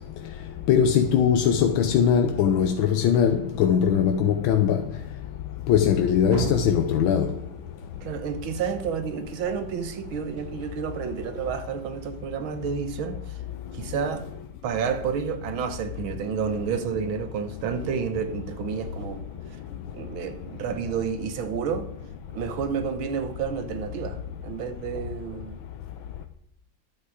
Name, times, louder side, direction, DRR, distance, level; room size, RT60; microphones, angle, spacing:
voice 1, 0.7-4.8 5.7-7.3, left 8 dB, 75° left, 1.5 m, -21 dB
sound 1, 6.3-9.2 10.4-12.2, equal, 30° right, 2.1 m, -37 dB
voice 2, 8.0-13.4 13.7-14.2 14.6-19.2 19.9-21.9 22.3-25.6, right 7 dB, 75° right, 1.9 m, -30 dB
11.0 x 8.9 x 5.0 m
omnidirectional pair, 2.3 m